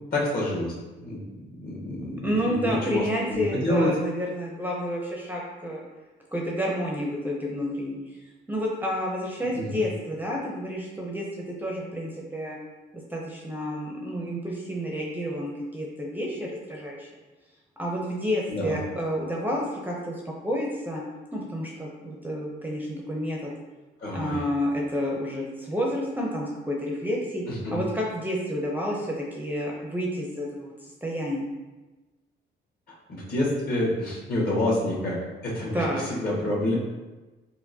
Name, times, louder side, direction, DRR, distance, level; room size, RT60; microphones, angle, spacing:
voice 1, 0.1-0.7 1.0-3.0 3.3-3.9 9.6-9.8 18.5-18.8 24.0-24.4 27.5-27.8 33.1-35.2 35.4-36.7, left 1 dB, 50° left, -5 dB, 1.4 m, -28 dB
voice 2, 2.0-5.8 6.3-8.0 8.5-11.3 11.6-12.6 13.1-17.1 17.8-21.0 21.3-23.4 24.1-27.4 27.7-30.7 31.0-31.5 35.7-36.1, equal, 10° right, -3 dB, 0.6 m, -30 dB
4.3 x 2.2 x 2.7 m, 1.2 s
cardioid pair, 90°, 20 cm